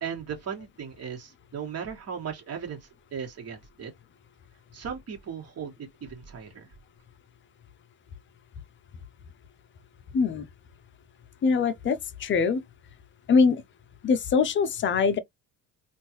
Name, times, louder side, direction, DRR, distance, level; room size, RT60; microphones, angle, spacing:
voice 1, 0.0-3.9 4.7-5.7 6.0-6.7, right 7 dB, 35° right, 1.7 m, -37 dB
voice 2, 10.1-10.5 11.4-12.6 13.3-13.6 14.0-15.2, left 5 dB, 30° left, 0.6 m, -23 dB
3.6 x 2.6 x 2.9 m
cardioid pair, 130°, 41 cm